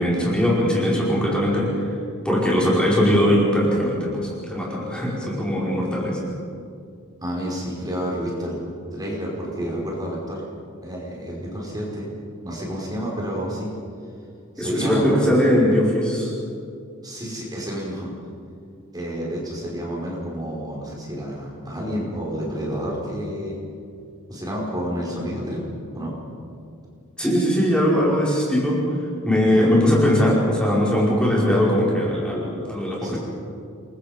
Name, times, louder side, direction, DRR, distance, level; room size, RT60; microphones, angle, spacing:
voice 1, 0.0-1.7 2.3-6.2 14.6-16.3 27.2-28.8 29.3-33.2, equal, 5° left, -6 dB, 5.2 m, -20 dB
voice 2, 7.2-8.6 8.9-10.4 10.8-12.1 12.4-13.7 14.6-15.3 17.0-18.1 18.9-23.6 24.3-25.6 25.9-26.1 29.5-29.8 33.0-33.2, equal, 20° right, -3 dB, 5.2 m, -29 dB
29.5 x 22.5 x 5.3 m, 2.4 s
head